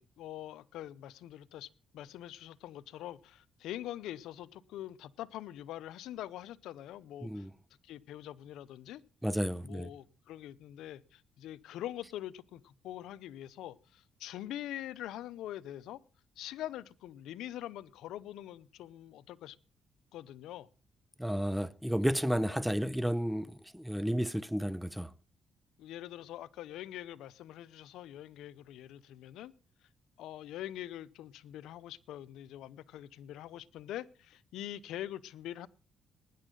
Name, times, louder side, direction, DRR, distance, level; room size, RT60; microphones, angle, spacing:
voice 1, 0.0-7.5 7.8-9.0 9.6-16.0 16.4-19.6 20.1-20.7 25.8-29.5 30.2-35.7, left 13 dB, 85° left, 0.7 m, -44 dB
voice 2, 7.2-7.5 9.2-9.9 21.2-25.1, equal, 5° right, 0.7 m, -32 dB
19.5 x 10.0 x 3.8 m
cardioid pair, 90°, 0 cm